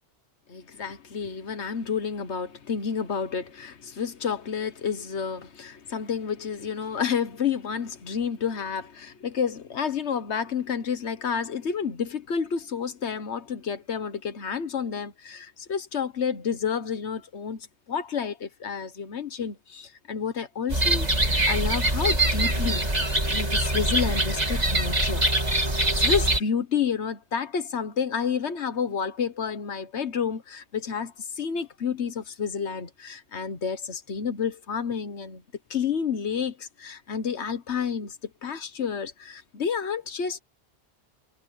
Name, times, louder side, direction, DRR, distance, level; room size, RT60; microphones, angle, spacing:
voice 1, 0.5-21.1 21.5-22.9 23.3-25.2 25.7-35.4 35.7-38.2 38.4-40.4, left 6 dB, 80° left, 1.6 m, -30 dB
sound 1, 20.7-26.4, right 1 dB, 40° right, 3.2 m, -23 dB
omnidirectional pair, 1.1 m